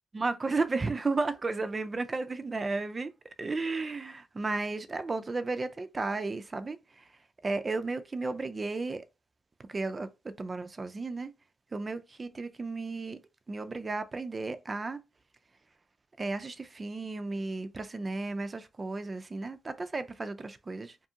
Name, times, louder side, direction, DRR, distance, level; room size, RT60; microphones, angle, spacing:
voice 1, 0.1-3.1 3.4-7.0 7.4-9.0 9.7-11.3 11.7-13.2 13.5-15.0 16.2-21.0, right 3 dB, 35° right, 0.3 m, -33 dB
2.6 x 2.4 x 2.7 m
supercardioid pair, 60°, 0 cm